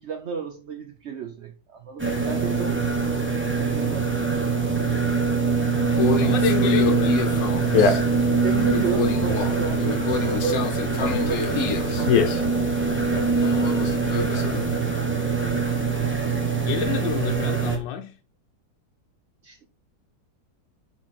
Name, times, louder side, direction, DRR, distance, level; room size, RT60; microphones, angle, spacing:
voice 1, 0.0-3.3 3.6-4.5 8.3-10.6 11.0-12.8 13.1-13.6 14.0-14.6 19.4-19.7, right 6 dB, 75° right, 0.6 m, -33 dB
sound 1, 2.0-17.8, right 4 dB, 10° right, 0.8 m, -24 dB
voice 2, 5.8-7.8 16.6-18.1, left 9 dB, 80° left, 1.3 m, -30 dB
Conversation, 5.9-14.8, left 5 dB, 60° left, 1.2 m, -26 dB
6.3 x 4.1 x 4.4 m
omnidirectional pair, 2.0 m